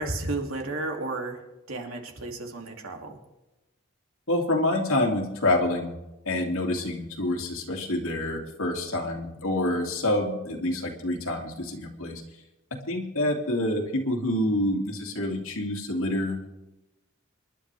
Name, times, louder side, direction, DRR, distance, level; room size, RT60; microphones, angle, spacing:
voice 1, 0.0-1.4 1.7-3.2, right 2 dB, 90° right, 3 dB, 2.6 m, -32 dB
voice 2, 4.3-5.9 6.2-12.2 12.9-16.5, left 1 dB, 85° left, 0 dB, 2.6 m, -27 dB
26.5 x 11.5 x 3.4 m, 1.0 s
head